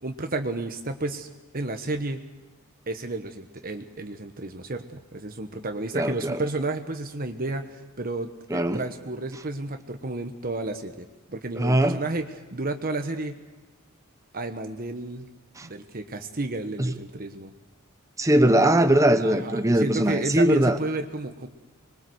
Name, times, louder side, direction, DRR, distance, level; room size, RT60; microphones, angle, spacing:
voice 1, 0.0-1.3 1.5-2.2 2.9-13.4 14.3-15.3 15.6-17.5 19.2-21.5, right 2 dB, 45° right, 6 dB, 1.3 m, -32 dB
voice 2, 5.9-6.4 8.5-8.8 11.5-12.0 15.6-15.7 16.8-16.9 18.2-20.8, right 1 dB, 15° right, 8 dB, 1.0 m, -21 dB
25.5 x 22.0 x 8.0 m, 1.2 s
head